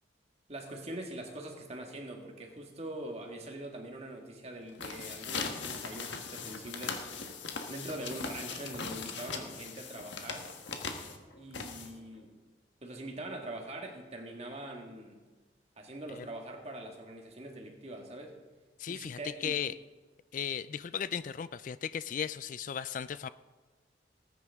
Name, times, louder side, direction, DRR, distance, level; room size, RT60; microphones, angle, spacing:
voice 1, 0.5-7.0 7.7-10.5 11.4-12.3 12.8-15.2 15.8-18.3 18.9-19.6, right 1 dB, 35° right, 2 dB, 1.8 m, -43 dB
sound 1, 4.6-12.2, left 5 dB, 85° left, 1.4 m, -40 dB
voice 2, 18.8-19.7 20.3-23.3, left 8 dB, 45° left, 15 dB, 0.3 m, -36 dB
19.0 x 9.6 x 3.6 m, 1.3 s
head